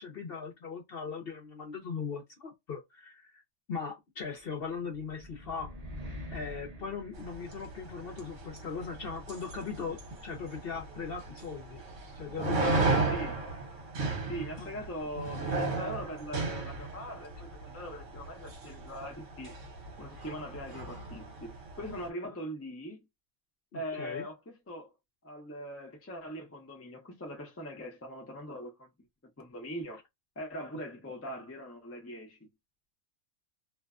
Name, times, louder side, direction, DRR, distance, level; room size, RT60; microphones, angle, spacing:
voice 1, 0.0-3.4 3.7-5.7 6.3-11.8 12.2-13.1 14.6-14.7 23.7-24.3, left 5 dB, 55° left, 0.7 m, -39 dB
sound 1, 4.7-8.0, left 1 dB, 40° right, 0.6 m, -45 dB
sound 2, 7.1-22.1, right 3 dB, 60° right, 1.2 m, -36 dB
voice 2, 14.3-19.5 20.0-23.1 23.7-24.9 25.2-28.9 29.4-30.0 30.4-32.5, equal, 20° left, 0.4 m, -41 dB
2.6 x 2.2 x 2.3 m
omnidirectional pair, 1.5 m